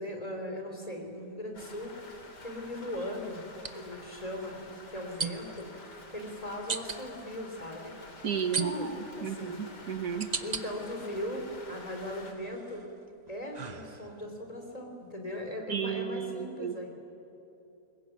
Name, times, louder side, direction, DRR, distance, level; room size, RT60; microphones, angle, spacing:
voice 1, 0.0-1.9 2.4-3.4 3.7-5.7 6.1-7.9 8.5-8.9 9.1-9.6 10.4-12.9 13.3-16.9, left 1 dB, 20° left, 2 dB, 3.7 m, -39 dB
sound 1, 0.7-0.9 3.5-3.7 5.2-5.6 6.7-7.0 8.5-9.1 9.7-10.6 11.2-11.8 12.3-14.3, right 5 dB, 35° right, 0.7 m, -36 dB
Rain, 1.5-12.3, left 2 dB, 75° left, 3.3 m, -49 dB
voice 2, 8.2-10.3 15.7-16.9, right 7 dB, 65° right, 7 dB, 1.7 m, -34 dB
23.0 x 20.5 x 9.3 m, 2.9 s
omnidirectional pair, 1.8 m